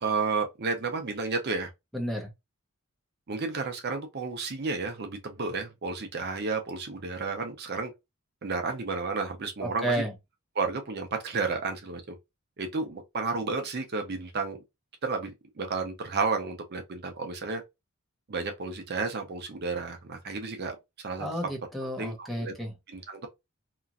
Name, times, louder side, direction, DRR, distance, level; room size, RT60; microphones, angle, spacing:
voice 1, 0.0-1.7 3.3-7.9 8.4-10.0 10.6-12.2 12.6-14.6 15.0-17.6 18.3-20.8 21.0-21.3 22.0-22.5 22.9-23.3, right 4 dB, 50° right, 0.6 m, -32 dB
voice 2, 1.9-2.3 9.6-10.1 21.2-22.7, right 1 dB, ahead, 0.7 m, -31 dB
2.9 x 2.4 x 2.4 m
head